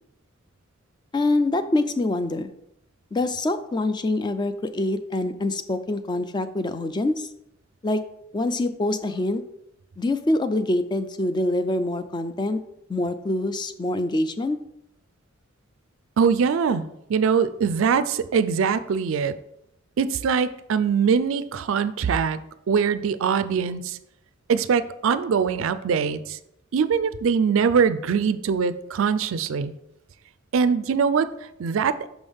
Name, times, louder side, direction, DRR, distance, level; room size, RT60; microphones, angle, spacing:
voice 1, 1.1-2.5 3.1-7.3 7.8-8.0 8.3-9.4 10.0-12.6 12.9-14.6, left 2 dB, 20° left, 11 dB, 0.3 m, -25 dB
voice 2, 16.2-19.3 20.0-22.4 22.7-24.0 24.5-26.4 26.7-29.7 30.5-32.1, right 6 dB, 70° right, 14 dB, 0.4 m, -22 dB
6.0 x 5.4 x 3.5 m, 0.80 s
head